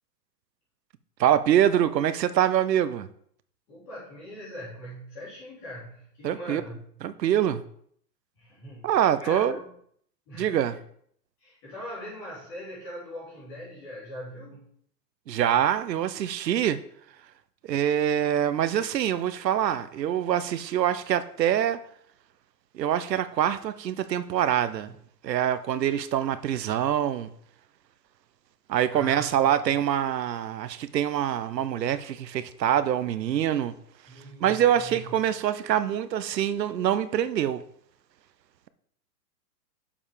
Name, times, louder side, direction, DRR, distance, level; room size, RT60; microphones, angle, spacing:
voice 1, 1.2-3.1 6.2-6.6 7.0-7.6 8.8-9.6 10.3-10.7 15.3-16.8 17.7-21.8 22.7-24.9 25.2-27.3 28.7-33.7 34.4-37.6, right 10 dB, 80° right, 0.8 m, -25 dB
voice 2, 3.7-6.9 8.4-8.9 9.2-9.7 10.3-10.8 11.4-14.6 28.9-29.6 34.1-35.1, equal, 20° left, 3.3 m, -41 dB
7.0 x 5.4 x 5.0 m
hypercardioid pair, 175°, 49 cm